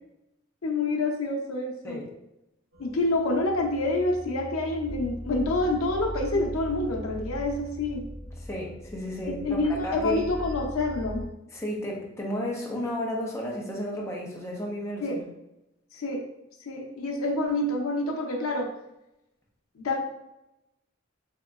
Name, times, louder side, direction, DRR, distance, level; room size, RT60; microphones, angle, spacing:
voice 1, 0.6-2.0 2.8-8.0 9.3-11.2 15.0-15.2 15.9-16.2 16.6-18.7 19.8-20.0, left 2 dB, 90° left, 3 dB, 0.6 m, -27 dB
sound 1, 2.7-11.2, left 1 dB, 75° right, 1.4 m, -39 dB
voice 2, 8.4-10.3 11.5-15.2, left 1 dB, 15° left, -3 dB, 0.6 m, -33 dB
3.6 x 2.9 x 2.3 m, 0.90 s
head